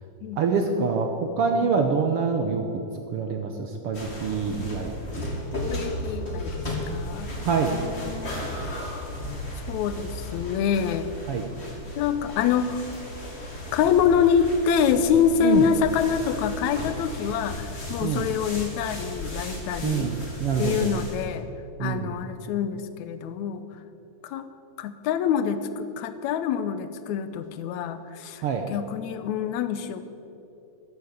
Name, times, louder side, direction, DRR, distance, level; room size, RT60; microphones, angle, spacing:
voice 1, 0.4-1.1 1.4-2.6 3.1-5.3 5.5-5.6 7.4-7.8 11.3-11.4 15.4-15.6 18.0-18.3 19.8-20.9 21.8-22.1 28.4-28.6, right 6 dB, 70° right, 4 dB, 1.4 m, -25 dB
sound 1, 3.9-21.3, left 1 dB, 20° left, 2.6 m, -35 dB
voice 2, 5.7-7.3 7.7-8.6 9.6-11.1 12.0-12.9 13.7-20.1 20.6-21.5 21.8-23.6 24.2-24.5 24.8-30.0, left 8 dB, 75° left, 11 dB, 2.1 m, -26 dB
14.5 x 10.5 x 8.4 m, 2.8 s
omnidirectional pair, 3.5 m